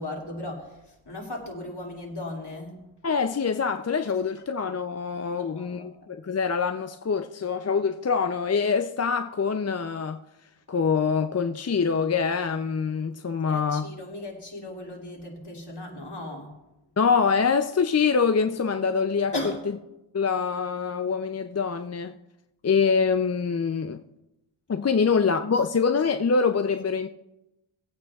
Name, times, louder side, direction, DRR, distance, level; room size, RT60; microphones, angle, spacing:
voice 1, 0.0-2.9 5.3-6.1 13.5-16.6 19.3-19.6 25.0-25.1, left 2 dB, 55° left, 2.5 m, -37 dB
voice 2, 3.0-10.2 10.7-13.9 17.0-19.3 20.1-22.1 22.6-24.0 24.7-27.1, left 5 dB, 35° left, 0.4 m, -25 dB
20.0 x 8.7 x 2.3 m
wide cardioid pair, 45°, 50 cm